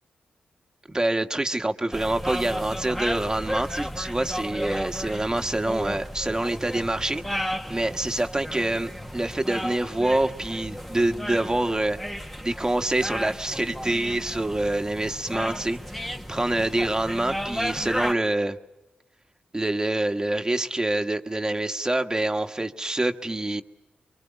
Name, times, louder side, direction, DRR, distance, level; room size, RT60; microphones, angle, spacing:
voice 1, 0.9-12.0 12.4-18.6 19.5-23.6, right 1 dB, 20° right, 6 dB, 1.5 m, -26 dB
sound 1, 1.9-18.1, equal, 5° left, 1.3 m, -34 dB
25.0 x 24.0 x 7.2 m, 1.0 s
cardioid pair, 50°, 3 cm